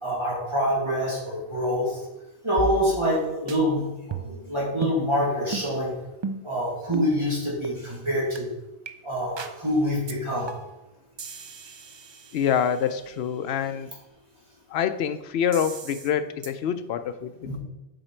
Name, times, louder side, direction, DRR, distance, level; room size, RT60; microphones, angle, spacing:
voice 1, 0.0-2.0 2.4-6.0 6.4-8.5 9.0-10.5 17.5-17.6, equal, 25° right, -6 dB, 2.1 m, -26 dB
sound 1, 2.6-3.2 3.5-3.6 4.1-4.5 4.8-5.0 5.5-5.7 6.2-6.5 6.9-7.1 7.6-7.8 8.4-8.5 8.9-9.0 9.4-9.6 10.1-10.2 10.5-10.8 11.2-13.0 15.5-16.1 16.4-16.5, right 4 dB, 45° right, 0.3 m, -35 dB
voice 2, 12.3-13.9 14.7-17.6, left 8 dB, 75° left, 11 dB, 0.8 m, -26 dB
7.9 x 5.0 x 4.3 m, 0.97 s
omnidirectional pair, 1.1 m